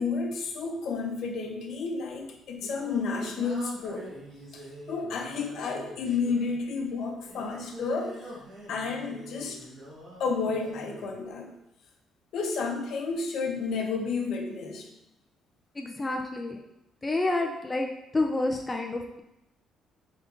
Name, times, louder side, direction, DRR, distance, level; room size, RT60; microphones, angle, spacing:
voice 1, 0.0-4.1 4.5-8.4 8.7-9.6 10.2-11.5 12.3-14.9, left 4 dB, 65° left, 3 dB, 0.7 m, -31 dB
Singing, 2.1-11.1, equal, 50° right, 1.4 m, -45 dB
voice 2, 15.8-16.6 17.0-19.2, left 2 dB, 15° left, 2 dB, 0.3 m, -29 dB
5.2 x 3.5 x 2.5 m, 0.87 s
cardioid pair, 155°, 0 cm